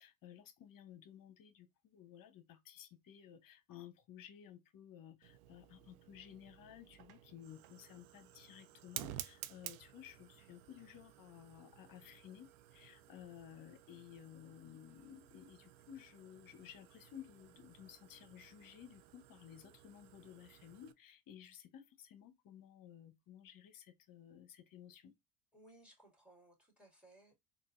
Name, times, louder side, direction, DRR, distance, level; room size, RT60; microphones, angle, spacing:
voice 1, 0.0-25.1, left 10 dB, 45° left, 0.9 m, -56 dB
Fire, 5.2-20.9, right 13 dB, 75° right, 0.6 m, -54 dB
voice 2, 25.5-27.3, right 1 dB, ahead, 2.1 m, -62 dB
3.9 x 2.5 x 2.5 m
supercardioid pair, 90°, 49 cm